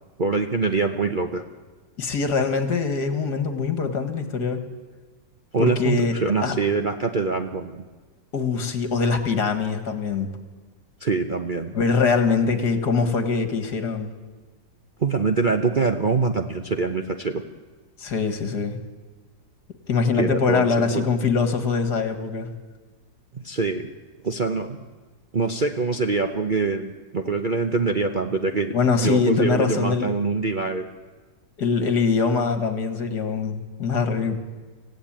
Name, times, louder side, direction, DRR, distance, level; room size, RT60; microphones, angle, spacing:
voice 1, 0.2-1.4 5.5-7.8 11.0-11.7 15.0-17.4 20.1-21.0 23.3-23.8 24.2-24.9 25.3-28.7 29.0-30.9, right 4 dB, 35° right, 4 dB, 0.8 m, -24 dB
voice 2, 2.0-4.6 5.6-6.1 6.4-6.6 8.3-10.4 11.7-14.1 18.0-18.8 19.9-22.5 28.7-30.1 31.6-34.4, left 5 dB, 65° left, 8 dB, 2.3 m, -23 dB
26.0 x 16.0 x 8.9 m, 1.3 s
omnidirectional pair, 2.0 m